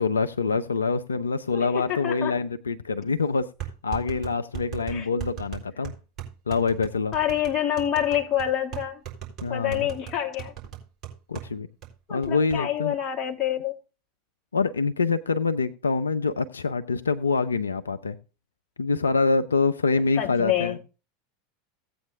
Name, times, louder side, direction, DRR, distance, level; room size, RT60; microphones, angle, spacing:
voice 1, 0.0-5.9 6.5-7.2 9.4-9.9 11.3-11.7 12.1-13.0 14.5-18.2 18.8-20.8, left 4 dB, 75° left, 0.4 m, -25 dB
voice 2, 1.5-2.4 4.9-5.1 7.1-9.0 9.5-10.5 12.1-13.7 20.2-20.8, left 10 dB, 30° left, 2.3 m, -27 dB
sound 1, 2.7-2.8 3.6-11.5 11.8-11.9 12.2-12.6, right 10 dB, 30° right, 3.7 m, -37 dB
17.0 x 8.4 x 2.5 m
figure-of-eight pair, 80°, 0 cm